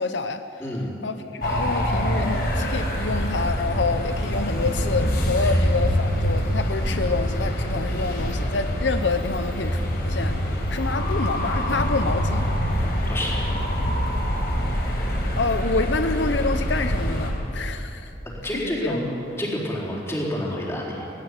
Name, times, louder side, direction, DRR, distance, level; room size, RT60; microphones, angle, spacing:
voice 1, 0.0-0.4 1.0-10.3 10.7-12.4 15.4-18.1 18.6-19.0, left 3 dB, 75° left, 9 dB, 0.8 m, -27 dB
voice 2, 0.6-0.9 2.6-2.7 5.4-5.6 13.1-13.5 18.4-19.1 19.4-21.1, left 1 dB, 15° left, -4 dB, 4.3 m, -29 dB
sound 1, 1.4-17.3, equal, 55° left, 4.7 m, -25 dB
18.0 x 17.5 x 9.7 m, 2.9 s
head